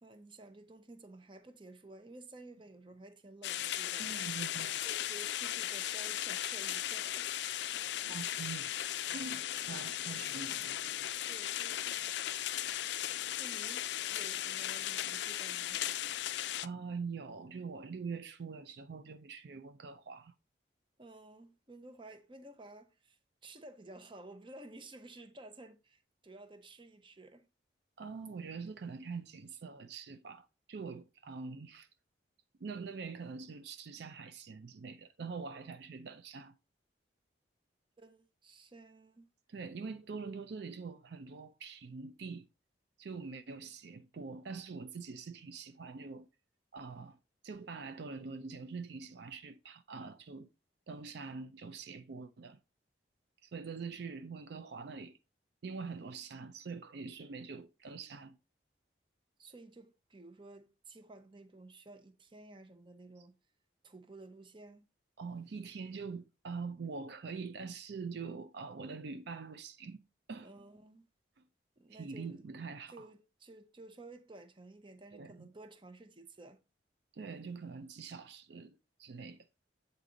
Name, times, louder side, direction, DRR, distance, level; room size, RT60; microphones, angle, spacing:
voice 1, 0.0-4.1 4.8-7.3 11.3-12.0 13.4-15.8 21.0-27.5 38.0-39.3 59.4-63.4 63.8-64.9 70.4-71.1 71.8-72.4 72.9-76.6, right 2 dB, 25° right, 0.7 m, -53 dB
sound 1, 3.4-16.7, left 13 dB, 65° left, 0.3 m, -37 dB
voice 2, 4.0-4.8 7.3-7.7 8.1-8.7 9.1-10.8 16.6-20.3 28.0-31.9 32.6-36.5 39.5-42.4 43.0-46.3 46.7-47.2 47.4-50.5 50.9-52.6 53.4-55.2 55.6-58.4 63.2-63.3 65.2-70.0 70.3-70.5 71.4-71.5 71.9-73.1 75.1-75.5 77.1-79.5, right 4 dB, 65° right, 0.4 m, -44 dB
8.2 x 4.0 x 3.7 m
head